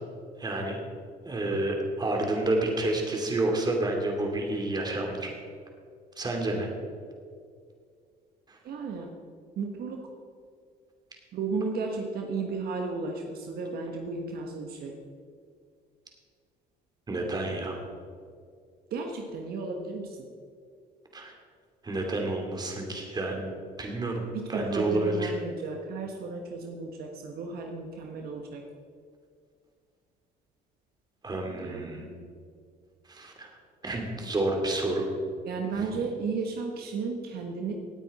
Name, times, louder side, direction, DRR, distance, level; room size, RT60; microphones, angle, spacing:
voice 1, 0.4-0.8 1.2-5.3 6.2-6.7 8.5-8.6 17.1-17.9 21.1-21.3 21.8-24.2 24.5-25.3 31.2-32.1 33.1-33.5 33.8-35.1 35.8-35.9, right 2 dB, 25° right, 1 dB, 2.7 m, -29 dB
voice 2, 8.6-9.1 9.6-10.0 11.3-15.0 18.9-20.2 24.3-28.6 31.6-32.0 35.4-37.7, right 4 dB, 65° right, 2 dB, 1.4 m, -34 dB
18.0 x 9.1 x 4.3 m, 2.1 s
cardioid pair, 110°, 17 cm